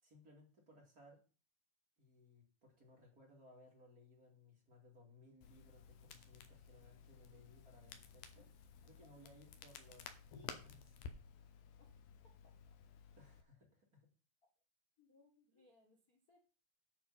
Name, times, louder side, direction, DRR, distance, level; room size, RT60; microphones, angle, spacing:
voice 1, 0.0-1.2 2.0-8.5 8.8-11.0 13.2-14.1 15.5-15.7, left 1 dB, 25° right, -1 dB, 2.6 m, -64 dB
Crackle, 5.4-13.4, left 6 dB, 75° left, 2.7 m, -55 dB
voice 2, 15.0-16.4, left 3 dB, 50° left, 0 dB, 1.0 m, -70 dB
9.0 x 5.4 x 7.5 m, 0.36 s
omnidirectional pair, 4.3 m